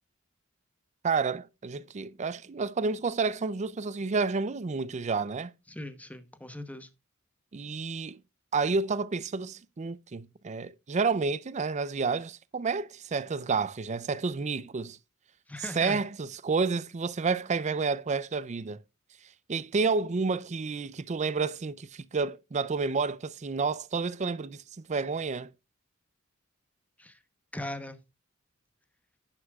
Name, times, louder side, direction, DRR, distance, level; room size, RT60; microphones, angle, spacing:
voice 1, 1.0-5.5 7.5-8.2 8.5-15.0 15.8-18.8 19.5-24.6 24.9-25.5, right 4 dB, 35° right, 0.5 m, -30 dB
voice 2, 5.7-6.9 15.5-16.0 27.0-27.2 27.5-28.0, left 1 dB, 5° left, 1.0 m, -39 dB
11.0 x 9.7 x 2.3 m
head